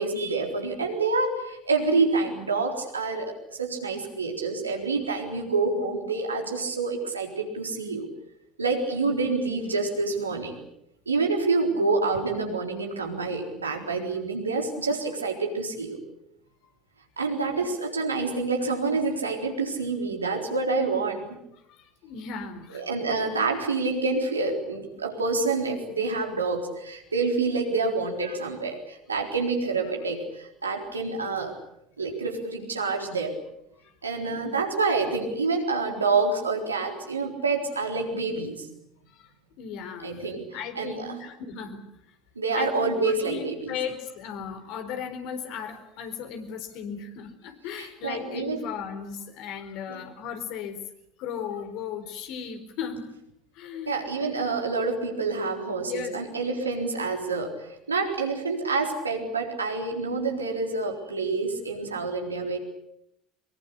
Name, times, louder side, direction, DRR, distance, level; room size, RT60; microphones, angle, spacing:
voice 1, 0.0-8.1 8.6-10.6 11.1-16.0 17.2-21.4 22.7-31.5 32.0-33.4 34.0-38.7 40.0-40.5 40.8-41.1 42.4-43.8 47.8-48.6 49.9-50.0 53.9-62.6, right 3 dB, 90° right, 2 dB, 4.0 m, -27 dB
voice 2, 21.7-22.9 33.8-33.9 34.2-34.5 39.1-39.3 39.6-40.1 40.5-41.8 42.5-50.8 51.2-53.1 53.5-54.0 55.8-56.1, left 7 dB, 60° left, 7 dB, 4.3 m, -36 dB
23.5 x 23.0 x 8.4 m, 0.81 s
figure-of-eight pair, 65°, 0 cm